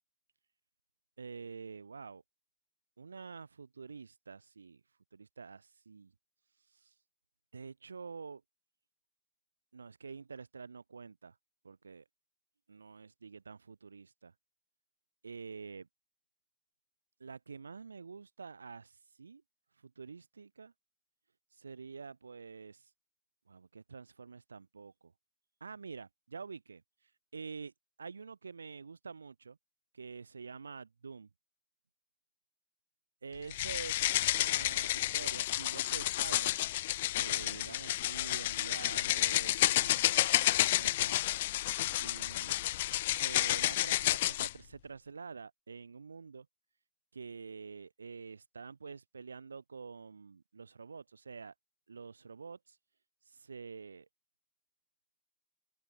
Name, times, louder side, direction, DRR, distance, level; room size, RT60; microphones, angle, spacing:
voice 1, 1.2-2.2 3.0-4.8 5.1-6.1 6.7-6.9 7.5-8.4 9.7-11.4 11.6-12.0 12.7-14.3 15.2-15.9 17.2-19.4 19.8-20.7 21.5-22.9 23.5-25.1 25.6-27.7 28.0-29.6 29.9-31.3 33.2-36.6 37.1-41.2 42.0-42.6 43.1-46.5 47.1-51.5 51.9-52.8 53.2-54.1, right 5 dB, 85° right, 7.6 m, -47 dB
sound 1, 33.5-44.5, left 15 dB, 70° left, 0.7 m, -30 dB
open air
figure-of-eight pair, 70°, 0 cm